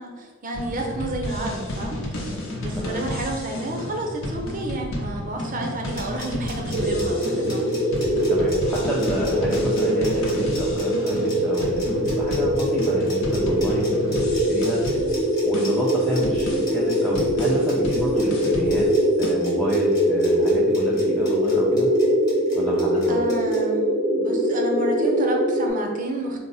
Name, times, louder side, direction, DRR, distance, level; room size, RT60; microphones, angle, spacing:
voice 1, 0.0-2.0 2.6-7.8 23.1-23.9 24.2-26.4, right 1 dB, 40° right, 2 dB, 0.6 m, -30 dB
sound 1, 0.5-19.3, left 1 dB, 70° left, 0.7 m, -32 dB
sound 2, 5.7-23.6, left 2 dB, 20° left, 1.1 m, -40 dB
sound 3, 6.7-25.7, equal, 85° right, 0.8 m, -22 dB
voice 2, 8.3-15.0 15.4-18.9 19.2-21.9 22.5-23.2, equal, 5° left, -6 dB, 0.4 m, -29 dB
4.0 x 2.1 x 3.9 m, 1.5 s
head